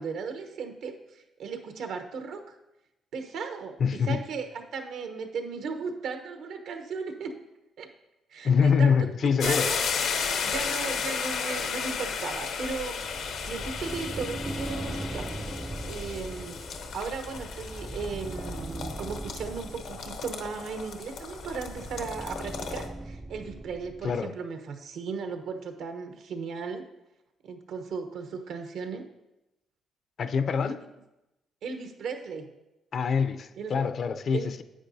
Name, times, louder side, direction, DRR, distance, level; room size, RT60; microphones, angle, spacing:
voice 1, 0.0-2.4 3.1-7.3 7.8-7.9 8.3-9.8 10.4-13.0 13.5-15.3 15.8-26.8 27.4-29.0 30.6-30.8 31.6-32.5 33.6-33.8 34.3-34.5, right 5 dB, 80° right, 6 dB, 0.9 m, -36 dB
voice 2, 3.8-4.2 8.4-9.7 24.0-24.3 30.2-30.8 32.9-34.6, left 6 dB, 55° left, 11 dB, 0.5 m, -25 dB
sound 1, 9.4-22.9, left 6 dB, 75° left, 0.8 m, -34 dB
sound 2, 13.0-24.2, right 2 dB, 15° right, 0.3 m, -40 dB
10.0 x 8.4 x 2.7 m, 0.94 s
cardioid pair, 90°, 0 cm